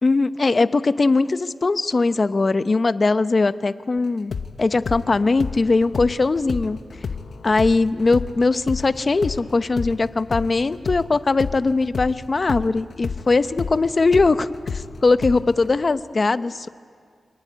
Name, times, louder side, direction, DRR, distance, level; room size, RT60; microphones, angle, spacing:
voice 1, 0.0-6.8 7.4-16.7, left 3 dB, 40° left, 12 dB, 0.8 m, -20 dB
sound 1, 4.3-12.2 12.5-15.7, left 5 dB, 70° left, 1.1 m, -31 dB
25.0 x 19.5 x 9.4 m, 2.1 s
wide cardioid pair, 90°, 0 cm